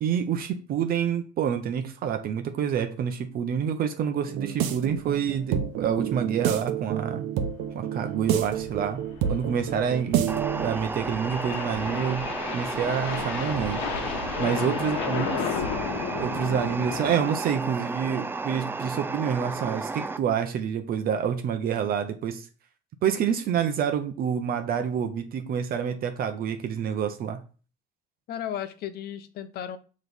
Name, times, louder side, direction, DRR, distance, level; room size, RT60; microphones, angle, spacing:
voice 1, 0.0-7.3 7.7-9.0 9.3-12.3 12.5-13.8 14.4-15.6 16.2-22.5 23.0-27.4, right 8 dB, 50° right, 0.8 m, -28 dB
sound 1, 4.2-10.8, right 10 dB, 75° right, 0.8 m, -29 dB
sound 2, 4.9-5.1 5.4-5.5 5.8-5.9 6.4-6.7 8.0-17.3, left 7 dB, 80° left, 1.0 m, -34 dB
sound 3, 10.3-20.2, right 3 dB, 10° right, 0.3 m, -33 dB
voice 2, 14.3-14.9 28.3-29.8, left 9 dB, 55° left, 0.7 m, -35 dB
6.1 x 3.1 x 5.2 m
cardioid pair, 140°, 20 cm